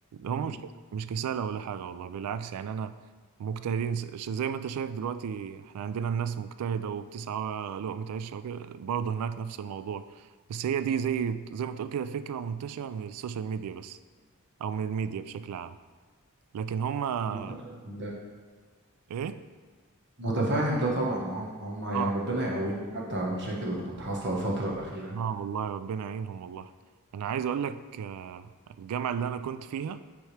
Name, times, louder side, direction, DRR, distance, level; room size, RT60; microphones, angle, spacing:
voice 1, 0.1-0.6 0.9-3.0 3.4-14.0 14.6-15.8 16.5-17.5 19.1-19.4 21.9-22.1 23.3-23.4 25.1-26.7 27.1-30.0, right 7 dB, 85° right, 13 dB, 0.3 m, -33 dB
voice 2, 17.3-18.1 20.2-25.1, right 1 dB, 50° right, -2 dB, 1.2 m, -31 dB
9.2 x 3.5 x 3.3 m, 1.5 s
head